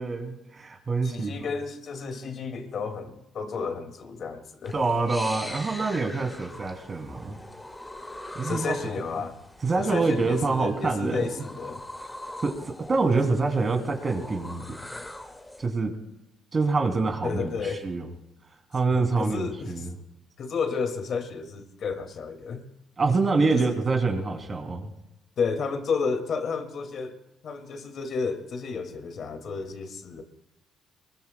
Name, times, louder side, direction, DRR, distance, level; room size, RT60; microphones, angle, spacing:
voice 1, 0.0-1.3 4.7-7.4 8.3-8.7 9.6-11.2 12.4-14.8 15.6-15.9 16.5-18.1 18.7-19.9 23.0-24.9, right 3 dB, 35° right, 3 dB, 2.9 m, -26 dB
voice 2, 1.0-4.8 8.4-9.4 9.8-11.8 17.2-17.9 18.9-19.9 20.4-22.7 23.5-23.8 25.4-30.2, left 5 dB, 60° left, 5 dB, 2.3 m, -32 dB
sound 1, 4.6-15.7, left 1 dB, 10° left, 2.1 m, -42 dB
24.0 x 22.0 x 2.3 m, 0.92 s
cardioid pair, 95°, 0 cm